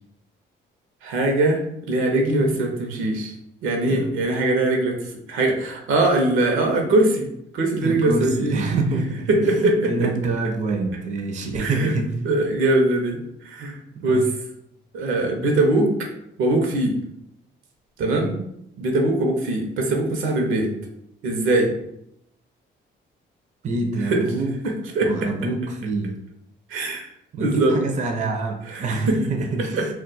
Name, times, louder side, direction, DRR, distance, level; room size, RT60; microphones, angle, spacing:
voice 1, 1.0-3.3 3.6-5.0 5.3-7.3 7.5-8.6 9.3-10.1 11.6-12.0 12.2-14.3 14.9-16.1 16.4-17.0 18.0-18.3 18.8-20.7 21.2-21.7 24.0-24.3 24.6-25.3 26.7-27.1 27.4-27.8 28.7-29.2 29.7-29.9, right 2 dB, 85° right, 2 dB, 0.7 m, -21 dB
voice 2, 7.8-9.3 9.6-12.2 14.0-14.2 18.0-18.3 23.6-24.5 25.0-26.1 27.3-29.9, right 3 dB, 35° right, 4 dB, 0.4 m, -26 dB
2.3 x 2.2 x 3.9 m, 0.76 s
cardioid pair, 90°, 20 cm